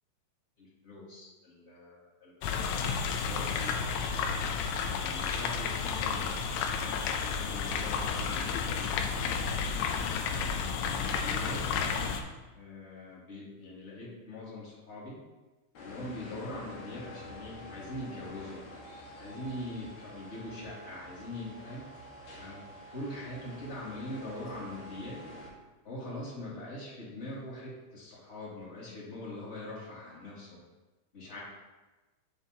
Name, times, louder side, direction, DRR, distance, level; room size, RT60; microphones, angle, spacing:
voice 1, 0.6-2.7 3.2-4.1 4.8-6.2 6.6-9.9 10.8-12.1 12.5-15.2 15.8-18.6 19.2-21.8 22.4-22.6 22.9-25.2 25.8-30.6 31.1-31.4, left 1 dB, 20° left, -7 dB, 1.8 m, -43 dB
sound 1, 2.4-12.2, left 6 dB, 90° left, 3.0 m, -31 dB
sound 2, 15.7-25.5, left 1 dB, 60° left, 2.0 m, -48 dB
12.5 x 5.6 x 2.8 m, 1.2 s
omnidirectional pair, 5.0 m